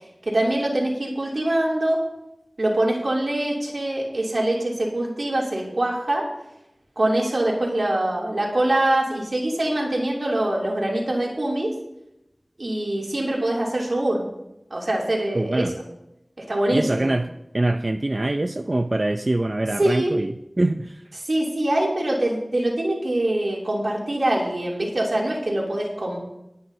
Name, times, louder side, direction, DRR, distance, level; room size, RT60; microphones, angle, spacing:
voice 1, 0.2-2.0 2.6-6.2 7.0-11.7 12.6-14.3 14.7-15.7 16.5-17.1 19.8-20.1 21.2-26.2, right 1 dB, 80° right, -2 dB, 2.9 m, -24 dB
voice 2, 15.3-15.7 16.7-21.0, right 2 dB, 50° right, 7 dB, 0.5 m, -24 dB
21.0 x 9.4 x 2.8 m, 0.86 s
wide cardioid pair, 50°, 0 cm